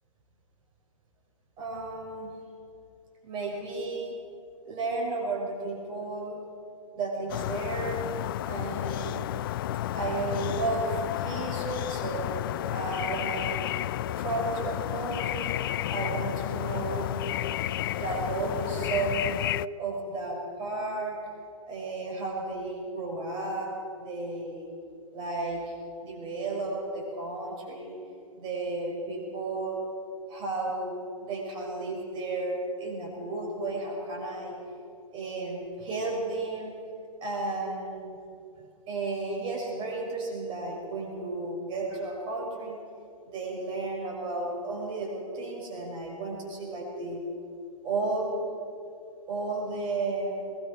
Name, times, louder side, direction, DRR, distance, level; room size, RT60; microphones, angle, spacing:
voice 1, 1.6-2.3 3.2-4.2 4.6-6.4 6.9-8.0 8.4-9.3 9.9-12.4 12.7-13.8 14.2-15.6 15.9-17.3 17.9-19.4 19.8-21.2 21.7-23.7 24.0-24.7 25.1-25.7 26.0-28.0 28.4-29.8 30.3-34.5 35.1-36.8 37.2-38.2 38.9-42.8 43.3-47.2 47.8-48.4 49.3-50.4, right 3 dB, 25° right, -1 dB, 6.1 m, -33 dB
sound 1, 7.3-19.7, left 13 dB, 40° left, 0.4 m, -32 dB
22.0 x 19.0 x 6.1 m, 2.5 s
figure-of-eight pair, 125°, 18 cm